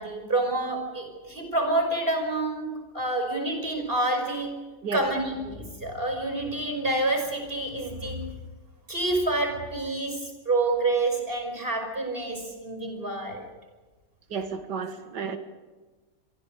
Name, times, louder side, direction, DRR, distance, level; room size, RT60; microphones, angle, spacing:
voice 1, 0.0-4.5 4.9-8.2 8.9-13.5, right 2 dB, 30° right, 4 dB, 5.7 m, -28 dB
voice 2, 14.3-15.4, right 5 dB, 80° right, 8 dB, 2.2 m, -32 dB
26.5 x 23.5 x 5.3 m, 1.3 s
omnidirectional pair, 1.8 m